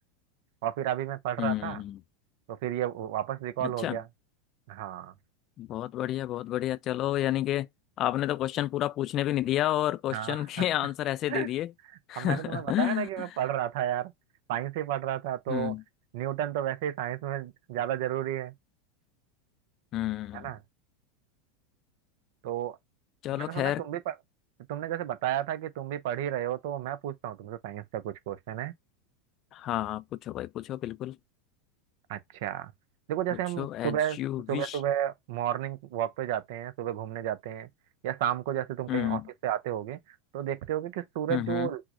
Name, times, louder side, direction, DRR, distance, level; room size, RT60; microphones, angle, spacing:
voice 1, 0.6-1.8 2.5-4.1 4.7-5.1 10.1-10.7 11.3-11.5 12.2-14.1 14.5-15.7 16.1-18.5 20.3-20.6 22.4-22.8 23.3-24.2 24.7-28.7 32.1-32.7 33.1-34.2 34.5-37.7 38.0-40.0 40.3-41.8, right 11 dB, 65° right, 0.5 m, -32 dB
voice 2, 1.4-2.0 3.6-4.0 5.6-7.7 8.0-11.7 12.1-13.1 15.5-15.8 19.9-20.5 23.2-23.8 29.5-31.2 33.6-34.8 38.9-39.2 41.3-41.7, left 14 dB, 45° left, 0.3 m, -30 dB
5.8 x 2.1 x 2.4 m
hypercardioid pair, 90°, 0 cm